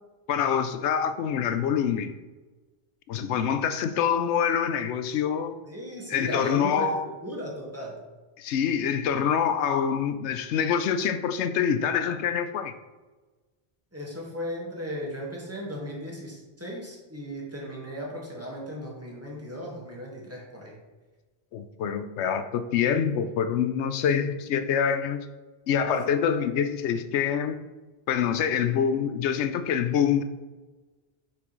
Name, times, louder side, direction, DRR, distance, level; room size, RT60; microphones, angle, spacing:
voice 1, 0.3-2.1 3.1-5.6 6.1-7.0 8.4-12.7 21.5-25.3 25.7-27.6 28.1-30.2, left 7 dB, 80° left, 10 dB, 0.9 m, -25 dB
voice 2, 5.6-8.0 13.9-20.8 24.1-24.3, equal, 15° right, -3 dB, 1.5 m, -36 dB
6.2 x 5.9 x 3.1 m, 1.3 s
omnidirectional pair, 1.1 m